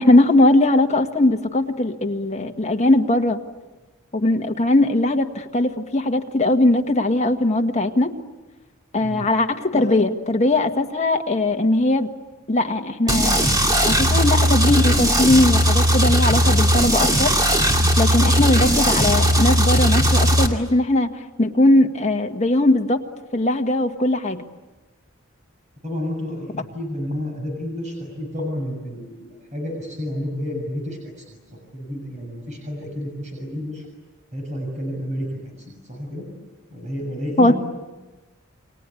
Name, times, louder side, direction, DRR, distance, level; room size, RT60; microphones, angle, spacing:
voice 1, 0.0-3.4 4.1-8.1 8.9-12.1 12.5-13.5 13.7-17.3 18.0-21.1 21.4-23.0 23.3-24.4 37.4-37.5, left 2 dB, 35° left, 3 dB, 1.6 m, -19 dB
sound 1, 13.1-20.5, equal, 20° right, 2.4 m, -18 dB
voice 2, 25.8-31.4 31.7-33.8 34.3-36.2 36.7-37.6, left 1 dB, 35° right, 1 dB, 6.8 m, -30 dB
29.5 x 23.5 x 8.5 m, 1.2 s
head